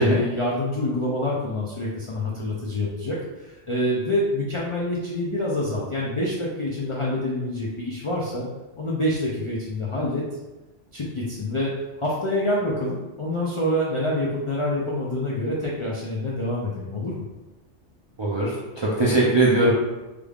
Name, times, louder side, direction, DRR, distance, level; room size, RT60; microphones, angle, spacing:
voice 1, 0.0-8.5 8.8-10.2 10.9-11.7 12.0-17.2, left 1 dB, 55° left, -5 dB, 0.3 m, -26 dB
voice 2, 18.2-19.7, right 2 dB, 45° right, -6 dB, 0.3 m, -20 dB
3.3 x 2.3 x 3.4 m, 1.1 s
omnidirectional pair, 1.2 m